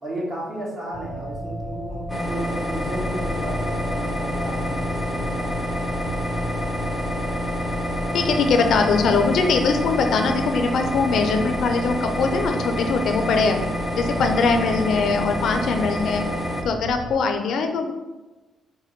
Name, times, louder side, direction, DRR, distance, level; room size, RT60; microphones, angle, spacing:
voice 1, 0.0-5.7, right 1 dB, 45° right, -4 dB, 1.5 m, -33 dB
sound 1, 0.9-17.1, equal, 70° right, 1.2 m, -33 dB
sound 2, 2.1-16.6, equal, 15° left, 0.5 m, -28 dB
voice 2, 8.1-13.6 13.9-16.2 16.6-17.9, left 4 dB, 70° left, 6 dB, 0.4 m, -21 dB
4.2 x 2.1 x 4.4 m, 1.1 s
cardioid pair, 90°, 0 cm